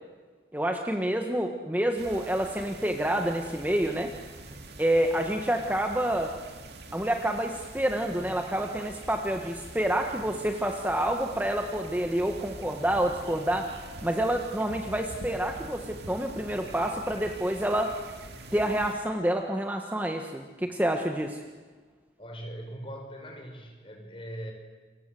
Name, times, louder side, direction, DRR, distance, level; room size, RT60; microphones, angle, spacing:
voice 1, 0.5-4.1 4.8-6.3 6.9-13.7 14.0-17.9 18.5-21.4, right 1 dB, 10° right, 3 dB, 1.5 m, -28 dB
sound 1, 2.0-18.9, right 2 dB, 60° right, 2.8 m, -45 dB
voice 2, 22.2-24.5, right 1 dB, 30° left, 3 dB, 5.4 m, -40 dB
29.5 x 25.0 x 7.8 m, 1.4 s
head